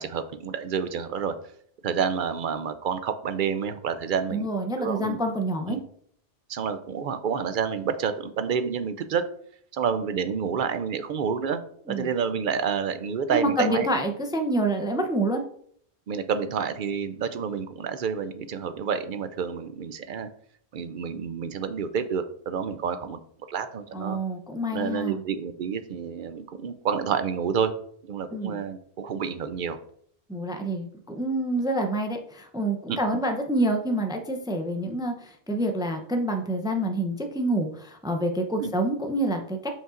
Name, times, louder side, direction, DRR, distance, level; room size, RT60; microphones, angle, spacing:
voice 1, 0.0-1.4 1.8-4.5 4.8-5.2 5.7-5.8 6.5-9.3 9.7-11.6 11.9-14.0 16.1-20.3 20.7-23.2 23.5-24.2 24.7-27.7 28.1-29.8 32.9-33.0 38.6-38.7, right 6 dB, 60° right, 10 dB, 0.6 m, -29 dB
voice 2, 4.3-5.8 11.9-12.1 13.3-15.4 23.9-25.2 28.3-28.6 30.3-39.7, right 1 dB, 5° right, 4 dB, 0.4 m, -27 dB
7.5 x 5.4 x 2.5 m, 0.63 s
omnidirectional pair, 1.1 m